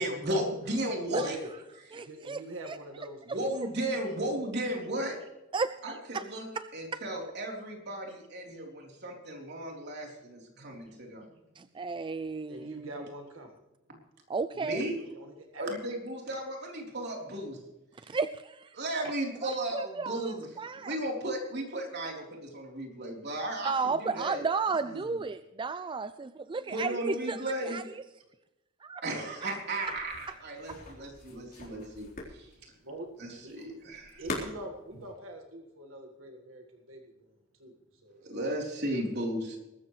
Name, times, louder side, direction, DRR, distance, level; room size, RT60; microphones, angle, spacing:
voice 1, 0.0-1.4 3.3-5.2 5.8-6.5 6.7-11.3 14.6-15.0 15.6-17.6 18.0-18.2 18.7-20.5 20.8-24.4 24.8-25.0 26.7-27.8 29.0-32.5 33.2-34.2 38.2-39.6, right 1 dB, 55° right, 0 dB, 3.8 m, -35 dB
voice 2, 1.2-1.5 1.9-3.5 10.6-10.7 11.3-11.4 12.5-13.6 14.7-15.8 32.6-33.6 34.2-38.3, right 1 dB, 75° right, 3 dB, 1.7 m, -45 dB
voice 3, 1.9-2.8 5.5-5.7 6.1-6.2 6.6-6.7 11.6-12.9 14.3-14.9 18.1-18.8 19.4-20.9 23.6-27.4 27.6-27.8 28.8-29.0, right 4 dB, 25° right, 12 dB, 0.4 m, -33 dB
sound 1, 29.8-35.1, left 2 dB, 45° left, 4.0 m, -42 dB
22.0 x 13.0 x 3.2 m, 0.95 s
head